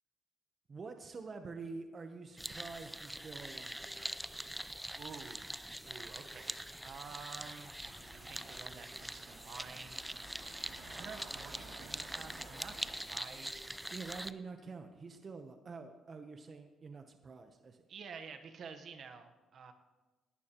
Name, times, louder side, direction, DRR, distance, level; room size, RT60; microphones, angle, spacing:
voice 1, 0.7-4.1 13.9-17.8, right 4 dB, 40° right, 6 dB, 0.8 m, -47 dB
sound 1, 2.4-14.3, right 1 dB, 5° right, 0.4 m, -44 dB
sound 2, 2.5-15.3, left 1 dB, 55° left, 4.7 m, -66 dB
voice 2, 5.0-5.5 5.8-7.7 8.3-10.1 10.9-13.8 17.9-19.7, right 5 dB, 60° right, 7 dB, 1.0 m, -50 dB
sound 3, 7.8-12.9, right 3 dB, 80° right, 2.9 m, -54 dB
18.5 x 11.5 x 3.0 m, 1.2 s
cardioid pair, 90°, 0 cm